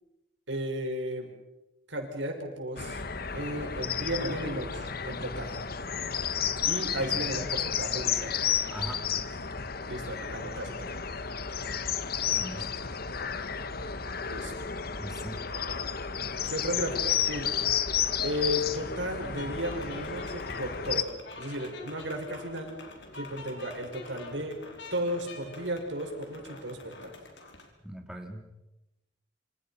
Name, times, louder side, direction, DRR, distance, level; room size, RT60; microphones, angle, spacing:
voice 1, 0.5-1.3 1.9-3.0 3.3-5.6 6.6-8.4 9.9-11.0 14.2-14.5 16.4-17.6 18.2-22.7 23.1-24.6 24.9-27.1, equal, 80° right, 3 dB, 6.2 m, -34 dB
sound 1, 2.8-21.0, left 7 dB, 55° left, 1.4 m, -32 dB
voice 2, 8.7-9.1 12.3-12.7 15.0-15.4 27.8-28.5, right 1 dB, 5° right, 2 dB, 2.7 m, -40 dB
sound 2, 19.2-27.7, left 2 dB, 70° left, 4.9 m, -46 dB
28.0 x 26.5 x 5.9 m, 0.98 s
head